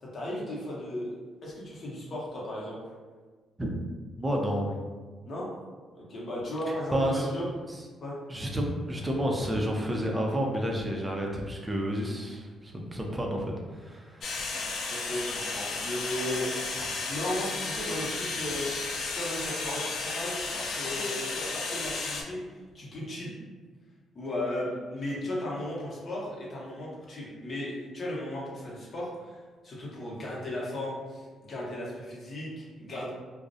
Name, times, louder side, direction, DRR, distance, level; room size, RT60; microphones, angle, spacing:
voice 1, 0.0-2.9 5.2-5.5 5.9-7.5 8.0-8.2 14.9-16.8 17.1-18.7 19.1-23.3 24.1-33.1, left 1 dB, 45° left, -5 dB, 0.8 m, -36 dB
voice 2, 4.2-4.7 6.7-7.3 7.7-7.8 8.3-14.6, equal, 15° right, 0 dB, 0.4 m, -30 dB
sound 1, 14.2-22.2, left 3 dB, 65° left, 0.4 m, -33 dB
2.4 x 2.0 x 2.6 m, 1.4 s
cardioid pair, 90°, 0 cm